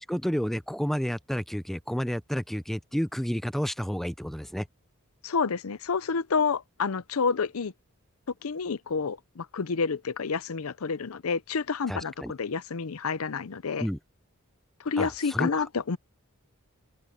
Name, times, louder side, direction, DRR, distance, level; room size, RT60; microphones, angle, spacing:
voice 1, 0.1-4.7 11.9-12.3 13.8-14.0 15.0-15.5, equal, ahead, 0.5 m, -30 dB
voice 2, 5.2-7.7 8.4-13.9 14.8-16.0, left 5 dB, 85° left, 0.6 m, -29 dB
open air
head